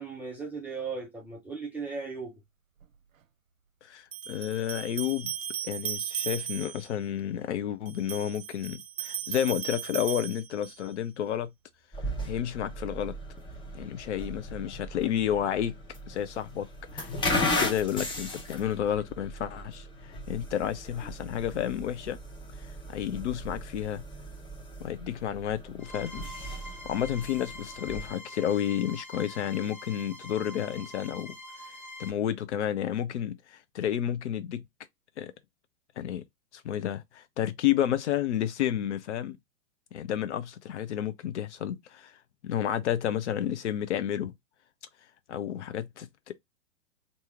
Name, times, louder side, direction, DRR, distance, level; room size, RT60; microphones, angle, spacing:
voice 1, 0.0-2.4, right 4 dB, 5° right, 0.4 m, -37 dB
sound 1, 2.8-2.9 4.1-6.9 7.9-10.9, right 10 dB, 70° right, 0.7 m, -36 dB
voice 2, 3.8-5.3 5.6-11.5 12.3-13.2 13.7-15.8 16.1-16.7 16.9-22.2 22.9-24.0 24.8-26.3 26.9-31.4 32.0-34.6 35.2-35.3 36.0-36.2 36.5-39.4 39.9-42.1 42.4-44.3 45.3-46.3, left 10 dB, 55° left, 0.7 m, -31 dB
sound 2, 11.9-28.1, left 1 dB, 10° left, 0.8 m, -36 dB
sound 3, 25.8-32.1, left 1 dB, 80° left, 1.5 m, -45 dB
3.0 x 2.7 x 3.5 m
figure-of-eight pair, 110°, 41 cm